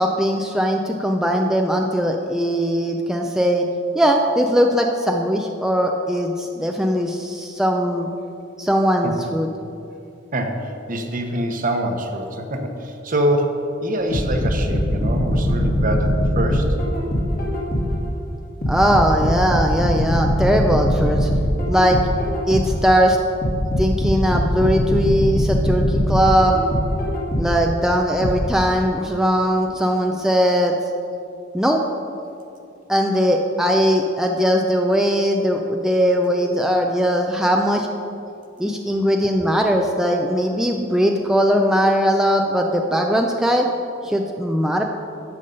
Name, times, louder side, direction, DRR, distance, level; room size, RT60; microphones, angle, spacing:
voice 1, 0.0-3.6 3.9-8.1 8.6-9.5 18.7-21.3 21.7-22.0 22.5-23.2 23.8-26.6 27.4-30.8 31.5-31.8 32.9-37.9 38.6-43.7 44.0-44.8, equal, 5° right, 1 dB, 0.5 m, -19 dB
voice 2, 10.3-16.8, right 1 dB, 45° right, 4 dB, 1.1 m, -24 dB
sound 1, 14.1-18.1 18.6-22.9 23.4-27.7 28.2-28.4, equal, 50° left, 2.3 m, -21 dB
12.0 x 7.1 x 5.4 m, 2.6 s
head